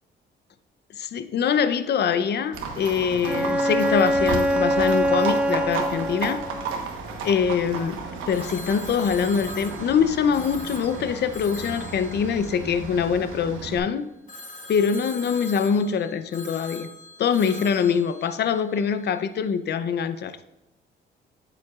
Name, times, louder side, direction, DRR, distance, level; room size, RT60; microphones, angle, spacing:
voice 1, 0.9-6.4 7.2-8.0 8.3-14.1 14.7-16.9 17.2-20.3, left 7 dB, 55° left, 12 dB, 0.6 m, -24 dB
Livestock farm animals working animals, 2.5-13.8, right 4 dB, 90° right, 1.1 m, -33 dB
Bowed string instrument, 3.2-6.7, equal, 5° right, 0.4 m, -24 dB
Telephone, 8.3-13.5 14.3-19.2, left 2 dB, 40° left, 1.4 m, -43 dB
8.7 x 7.7 x 2.4 m, 0.98 s
cardioid pair, 90°, 20 cm